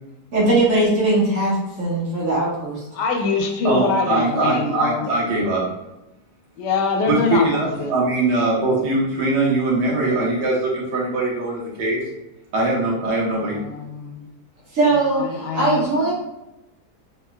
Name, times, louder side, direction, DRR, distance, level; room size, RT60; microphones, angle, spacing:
voice 1, 0.3-2.8 14.7-16.1, right 2 dB, 55° right, -6 dB, 1.5 m, -20 dB
voice 2, 2.9-5.1 6.6-7.9 13.4-14.3 14.9-15.8, left 4 dB, 90° left, 3 dB, 1.2 m, -24 dB
voice 3, 3.6-5.7 7.1-12.0 12.5-13.6, right 2 dB, 80° right, -4 dB, 1.6 m, -21 dB
3.3 x 3.3 x 2.3 m, 0.95 s
omnidirectional pair, 1.8 m